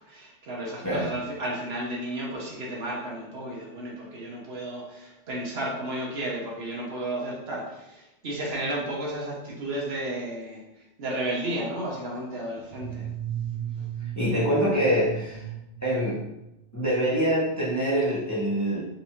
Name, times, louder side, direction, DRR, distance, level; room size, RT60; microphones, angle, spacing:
voice 1, 0.1-10.6 11.0-13.1, right 1 dB, 65° right, -3 dB, 1.0 m, -33 dB
sound 1, 12.6-16.7, right 10 dB, 40° right, 0.6 m, -36 dB
voice 2, 14.2-15.4 15.8-16.2 16.7-18.8, equal, 15° left, -8 dB, 0.8 m, -25 dB
4.0 x 2.6 x 2.9 m, 0.91 s
omnidirectional pair, 1.2 m